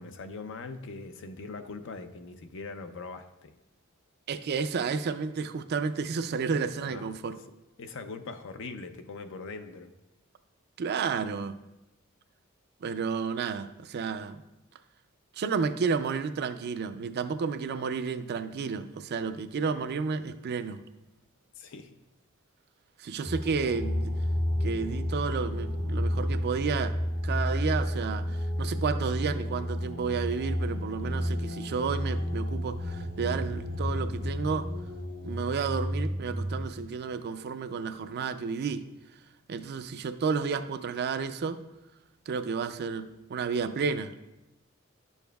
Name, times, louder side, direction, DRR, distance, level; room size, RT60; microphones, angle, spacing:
voice 1, 0.0-3.5 6.8-7.1 7.8-9.9 21.6-21.9, left 3 dB, 65° left, 8 dB, 0.5 m, -41 dB
voice 2, 4.3-7.4 10.8-11.6 12.8-14.4 15.4-20.8 23.0-24.1 24.6-27.0 27.2-34.7 35.2-38.8 39.5-41.6 42.3-44.1, right 5 dB, 50° right, 11 dB, 0.4 m, -31 dB
sound 1, 23.2-36.7, equal, 45° left, 1.1 m, -31 dB
11.0 x 7.1 x 2.3 m, 0.96 s
head